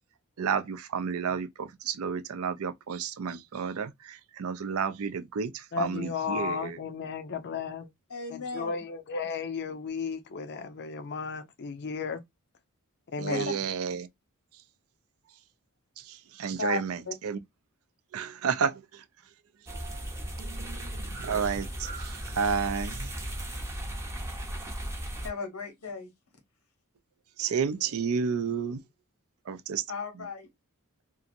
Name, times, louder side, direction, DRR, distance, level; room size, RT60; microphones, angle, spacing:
voice 1, 0.4-6.7 13.2-14.1 16.1-17.4 18.1-18.8 20.4-23.1 27.4-28.8 29.5-29.8, right 6 dB, 70° right, 0.4 m, -31 dB
voice 2, 5.7-7.9 8.3-12.2 13.1-13.5, left 5 dB, 50° left, 0.5 m, -34 dB
voice 3, 8.1-8.8 13.3-13.5 16.6-17.1 25.2-26.1 29.9-30.5, left 4 dB, 90° left, 1.2 m, -36 dB
sound 1, 19.7-25.3, right 1 dB, 10° right, 0.6 m, -36 dB
2.8 x 2.5 x 2.5 m
head